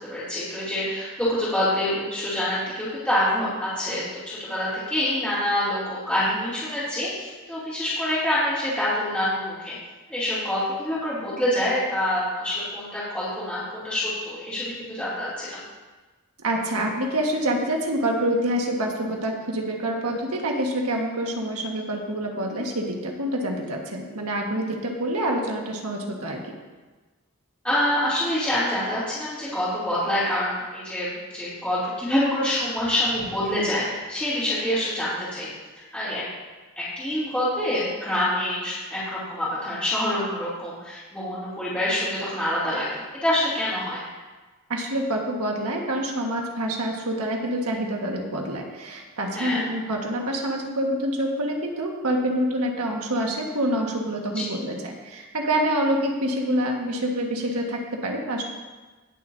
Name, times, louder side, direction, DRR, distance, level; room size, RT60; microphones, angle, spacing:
voice 1, 0.0-9.8 10.1-15.6 27.6-35.5 35.9-36.2 36.8-44.0 49.3-49.6 54.3-54.5, left 1 dB, 5° left, -12 dB, 2.9 m, -26 dB
voice 2, 16.4-26.5 44.7-58.4, right 1 dB, 85° right, 0 dB, 1.6 m, -26 dB
19.5 x 7.2 x 2.7 m, 1.3 s
head